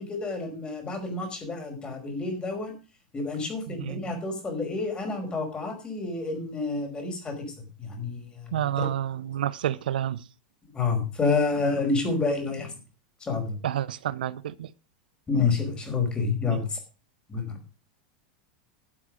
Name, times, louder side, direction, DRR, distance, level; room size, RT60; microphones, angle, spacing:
voice 1, 0.0-2.7 3.1-7.4 7.8-8.9 10.7-12.7 13.2-13.6 15.3-16.8 17.3-17.6, left 4 dB, 20° left, 5.2 m, -29 dB
voice 2, 8.5-10.2 13.6-14.7 16.5-16.6, right 11 dB, 85° right, 0.7 m, -29 dB
12.5 x 7.5 x 6.3 m
hypercardioid pair, 120°, 5 cm